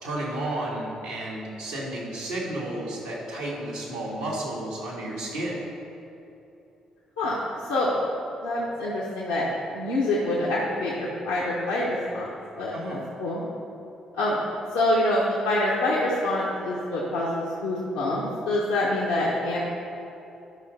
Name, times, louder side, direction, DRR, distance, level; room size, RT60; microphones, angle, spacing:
voice 1, 0.0-5.6 12.7-13.0, right 1 dB, 90° right, -5 dB, 2.0 m, -32 dB
voice 2, 8.4-9.5 9.7-12.3 12.6-12.7 13.2-13.4 14.2-14.4 14.7-19.6, left 1 dB, 85° left, -7 dB, 1.1 m, -26 dB
11.5 x 5.7 x 4.2 m, 2.9 s
hypercardioid pair, 45°, 2 cm